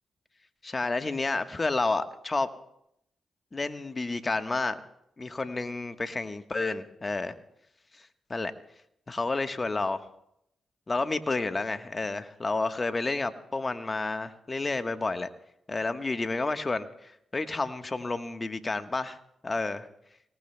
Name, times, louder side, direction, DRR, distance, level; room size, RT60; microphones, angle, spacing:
voice 1, 0.6-2.5 3.5-4.8 5.2-7.3 8.0-8.5 9.1-10.0 10.9-15.3 15.7-19.2 19.4-19.9, left 3 dB, 35° left, 9 dB, 1.2 m, -30 dB
24.5 x 18.5 x 2.2 m, 0.77 s
supercardioid pair, 40°, 0 cm